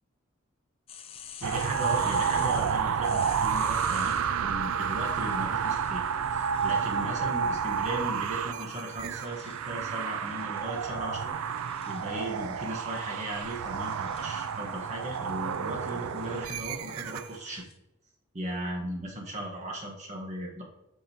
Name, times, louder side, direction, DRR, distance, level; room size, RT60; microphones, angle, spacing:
sound 1, 0.9-4.3 5.6-17.8, left 8 dB, 25° left, 0.4 m, -50 dB
voice 1, 1.4-11.4 11.9-17.6 18.3-20.6, right 1 dB, 35° right, -1 dB, 1.2 m, -37 dB
sound 2, 1.4-17.4, right 7 dB, 90° right, 0.4 m, -30 dB
7.6 x 6.1 x 2.8 m, 0.96 s
head